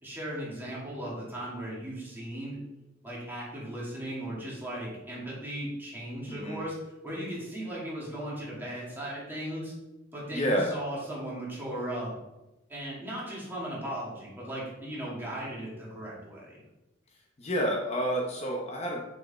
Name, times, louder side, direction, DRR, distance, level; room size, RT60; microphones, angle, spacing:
voice 1, 0.0-2.6 3.0-6.7 7.0-9.7 10.1-12.1 12.7-16.6, right 1 dB, 10° right, -6 dB, 2.2 m, -37 dB
voice 2, 6.3-6.6 10.3-10.7 17.4-19.0, equal, 35° left, -1 dB, 0.8 m, -29 dB
6.2 x 4.7 x 4.3 m, 0.99 s
head